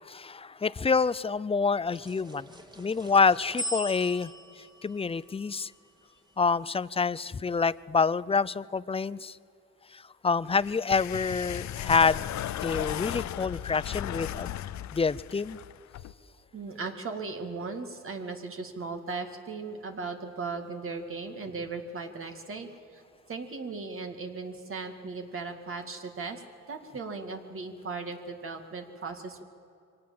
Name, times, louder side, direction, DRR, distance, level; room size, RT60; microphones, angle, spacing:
voice 1, 0.1-2.5 2.8-4.3 4.8-5.7 6.4-9.4 9.9-12.2 12.6-14.6 14.9-15.6, left 5 dB, 20° left, 19 dB, 0.5 m, -27 dB
sound 1, 1.9-6.5, left 1 dB, 15° right, 2.1 m, -41 dB
sound 2, 10.5-16.1, left 11 dB, 65° left, 0.7 m, -36 dB
voice 2, 16.5-23.0 23.3-26.4 26.7-29.4, right 4 dB, 45° right, 5 dB, 2.1 m, -37 dB
23.5 x 18.0 x 7.7 m, 2.6 s
cardioid pair, 90°, 30 cm